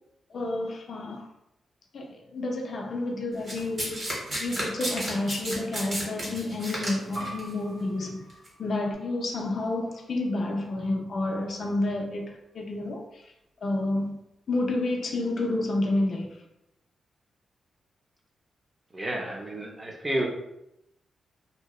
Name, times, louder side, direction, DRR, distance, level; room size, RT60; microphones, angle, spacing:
voice 1, 0.3-1.3 1.9-8.2 8.6-13.3 13.6-14.2 14.5-16.4, left 2 dB, 50° left, 1 dB, 0.3 m, -30 dB
Domestic sounds home sounds, 3.5-7.4 8.3-8.5, right 1 dB, 40° right, 0.8 m, -32 dB
sound 1, 7.1-12.3, right 1 dB, 60° right, 1.5 m, -46 dB
voice 2, 18.9-20.3, right 1 dB, 20° right, 0 dB, 0.4 m, -30 dB
2.7 x 2.0 x 2.2 m, 0.84 s
wide cardioid pair, 140°, 0 cm